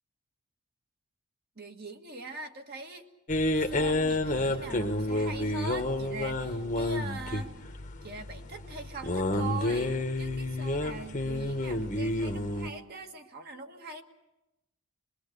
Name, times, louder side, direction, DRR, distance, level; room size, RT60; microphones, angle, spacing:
voice 1, 1.6-3.1 3.6-7.5 8.0-14.0, right 3 dB, 45° right, 4 dB, 1.7 m, -42 dB
sound 1, 3.3-12.7, left 1 dB, 35° left, 1.2 m, -30 dB
24.5 x 22.5 x 6.7 m, 0.95 s
head